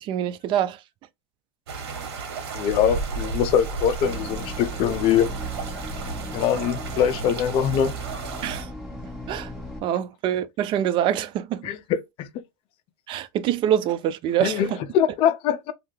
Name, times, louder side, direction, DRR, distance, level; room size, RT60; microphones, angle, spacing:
voice 1, 0.0-0.8 8.4-8.7 9.3-9.5 9.8-11.7 13.1-14.6, right 10 dB, 40° right, 0.4 m, -25 dB
sound 1, 1.7-8.6, right 6 dB, 80° right, 1.1 m, -35 dB
voice 2, 2.5-5.3 6.3-7.9 11.6-12.3 14.4-15.7, left 9 dB, 45° left, 0.5 m, -23 dB
Wind, 2.6-8.1, right 2 dB, 60° right, 1.2 m, -35 dB
sound 2, 4.0-9.8, left 1 dB, ahead, 1.3 m, -38 dB
2.7 x 2.4 x 3.2 m
supercardioid pair, 125°, 13 cm